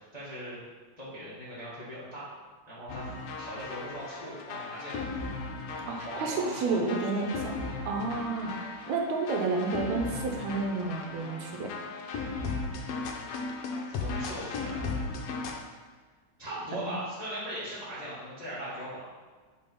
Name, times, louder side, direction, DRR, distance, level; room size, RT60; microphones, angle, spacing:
voice 1, 0.1-0.6 1.0-2.3 2.7-3.1 3.4-4.9 5.7-7.0 13.9-15.0 16.4-19.0, equal, 25° left, -9 dB, 0.8 m, -39 dB
sound 1, 2.9-15.6, left 3 dB, 75° left, 1.8 m, -37 dB
voice 2, 5.9-7.6 7.9-11.7 16.7-16.9, right 3 dB, 75° right, 2 dB, 2.0 m, -31 dB
5.6 x 4.1 x 5.3 m, 1.4 s
omnidirectional pair, 3.4 m